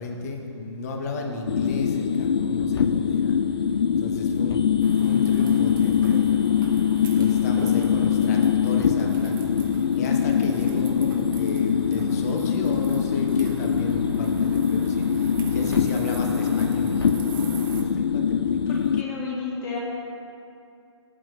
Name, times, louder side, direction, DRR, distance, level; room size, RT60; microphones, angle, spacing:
voice 1, 0.0-3.3 4.0-4.6 4.9-6.4 7.1-18.8, left 3 dB, 30° left, 2 dB, 1.1 m, -34 dB
sound 1, 1.5-19.0, left 7 dB, 55° left, 0.4 m, -23 dB
sound 2, 4.8-17.8, right 3 dB, 45° right, 1.0 m, -40 dB
voice 2, 7.2-7.7 18.7-19.8, left 4 dB, 15° left, -4 dB, 1.7 m, -33 dB
14.5 x 9.0 x 2.5 m, 2.5 s
figure-of-eight pair, 135°, 15 cm